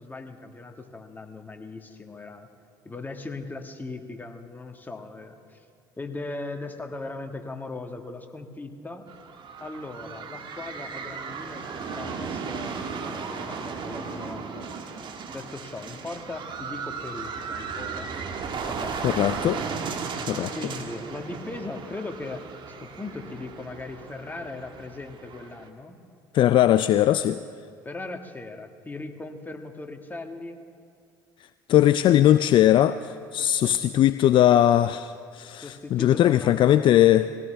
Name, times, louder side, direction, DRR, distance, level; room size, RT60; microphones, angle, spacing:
voice 1, 0.0-2.5 2.8-5.6 6.0-9.1 9.6-15.1 15.3-18.2 18.6-19.3 20.5-22.4 22.8-26.0 27.8-30.6 33.4-34.0 35.6-37.0, left 2 dB, 15° left, 4 dB, 1.8 m, -38 dB
sound 1, 9.1-25.7, right 5 dB, 45° right, 1.5 m, -36 dB
voice 2, 19.0-19.6 20.2-20.5 26.3-27.4 31.7-37.3, left 12 dB, 50° left, 13 dB, 0.4 m, -20 dB
21.5 x 17.0 x 3.4 m, 2.3 s
hypercardioid pair, 60°, 11 cm